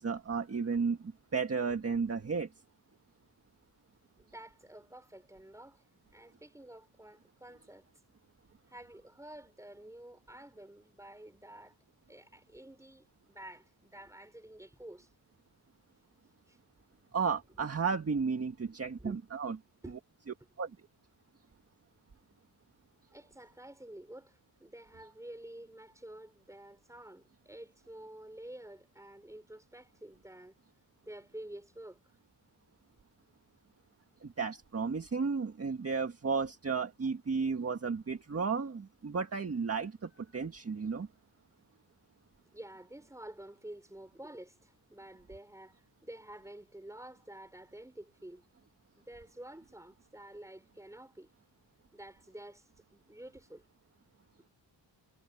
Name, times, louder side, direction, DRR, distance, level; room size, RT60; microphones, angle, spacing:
voice 1, 0.0-2.5 17.1-19.6 20.6-20.7 34.2-41.1, right 5 dB, 35° right, 1.7 m, -33 dB
voice 2, 4.2-5.8 6.1-7.9 8.7-11.8 12.1-15.1 16.5-16.6 17.5-17.7 19.0-19.2 19.8-20.0 23.1-30.5 31.0-32.0 42.5-48.4 48.9-51.3 51.9-53.6, right 1 dB, 5° right, 5.7 m, -50 dB
wide cardioid pair, 145°, 43 cm